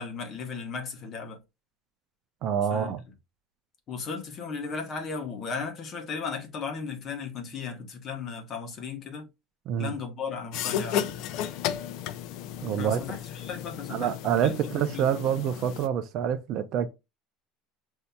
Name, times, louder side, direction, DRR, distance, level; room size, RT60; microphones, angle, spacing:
voice 1, 0.0-1.4 2.7-2.9 3.9-9.3 9.8-11.0 12.8-14.1 14.4-15.1, left 5 dB, 30° left, 1.0 m, -36 dB
voice 2, 2.4-3.0 9.7-9.9 12.6-13.1 13.9-16.9, right 9 dB, 40° right, 0.4 m, -27 dB
sound 1, 10.5-15.9, left 9 dB, 55° left, 0.4 m, -34 dB
6.9 x 2.7 x 2.2 m
cardioid pair, 175°, 0 cm